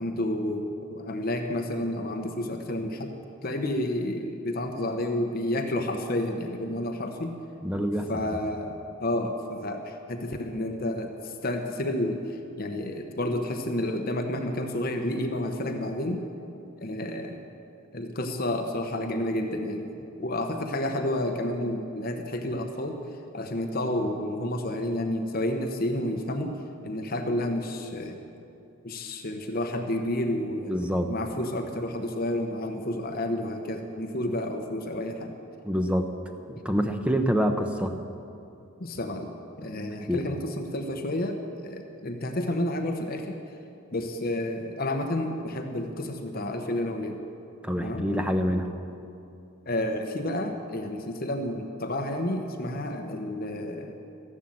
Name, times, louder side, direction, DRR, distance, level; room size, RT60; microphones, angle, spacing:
voice 1, 0.0-3.1 3.4-7.3 8.1-12.2 12.6-16.2 16.8-17.4 17.9-23.0 23.3-26.5 26.8-28.2 28.8-30.7 31.1-35.3 38.8-41.4 41.6-43.4 43.9-47.2 47.8-48.0 49.7-53.9, left 1 dB, 45° left, 4 dB, 1.0 m, -30 dB
voice 2, 7.6-8.4 30.7-31.1 35.6-36.1 36.5-38.0 40.1-40.2 47.6-48.7, equal, 5° right, 5 dB, 0.8 m, -26 dB
14.0 x 11.0 x 7.7 m, 2.6 s
head